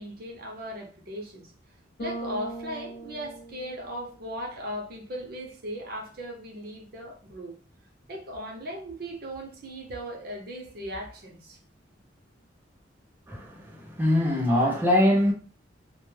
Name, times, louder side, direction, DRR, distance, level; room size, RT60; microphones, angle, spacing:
voice 1, 0.0-1.5 2.0-7.6 8.1-11.6, equal, 50° right, 0.7 m, -37 dB
Bass guitar, 2.0-4.3, right 2 dB, 60° left, 0.6 m, -39 dB
voice 2, 13.3-15.3, left 1 dB, 10° right, 0.6 m, -23 dB
2.1 x 2.1 x 3.1 m
head